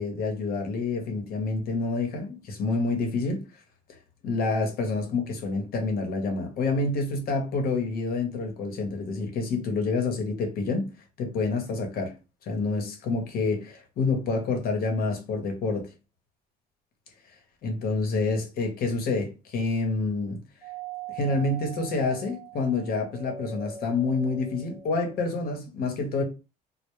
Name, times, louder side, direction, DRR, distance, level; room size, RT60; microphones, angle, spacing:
voice 1, 0.0-3.4 4.2-10.9 11.2-12.1 12.5-15.9 17.6-20.4 21.1-26.2, left 3 dB, 65° left, 0.8 m, -28 dB
Doorbell, 20.6-25.5, right 8 dB, 30° right, 0.3 m, -42 dB
2.1 x 2.0 x 3.0 m
cardioid pair, 110°, 17 cm